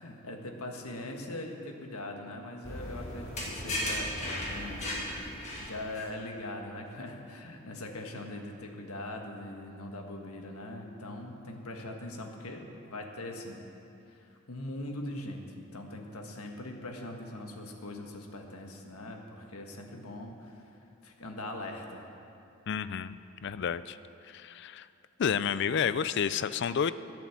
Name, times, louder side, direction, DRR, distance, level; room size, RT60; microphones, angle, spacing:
voice 1, 0.0-13.6 14.1-20.8 21.0-22.1, left 1 dB, 85° left, 3 dB, 1.4 m, -41 dB
sound 1, 2.6-6.0, left 1 dB, 30° left, 2.2 m, -36 dB
voice 2, 22.7-23.2 23.4-24.0 24.3-24.9 25.2-26.9, left 7 dB, 50° left, 14 dB, 0.3 m, -30 dB
12.5 x 8.7 x 7.1 m, 2.7 s
head